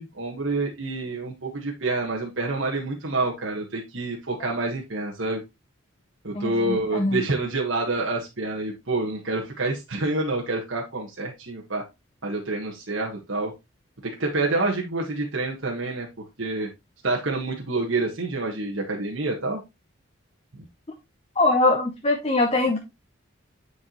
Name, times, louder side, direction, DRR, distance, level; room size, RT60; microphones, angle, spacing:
voice 1, 0.0-5.4 6.2-11.8 12.2-13.5 14.0-16.1 16.4-16.7 17.0-19.6, right 2 dB, 70° right, -1 dB, 1.5 m, -27 dB
voice 2, 6.3-7.2 21.4-22.8, left 2 dB, 30° left, 3 dB, 0.8 m, -22 dB
9.6 x 4.7 x 3.0 m, 0.22 s
head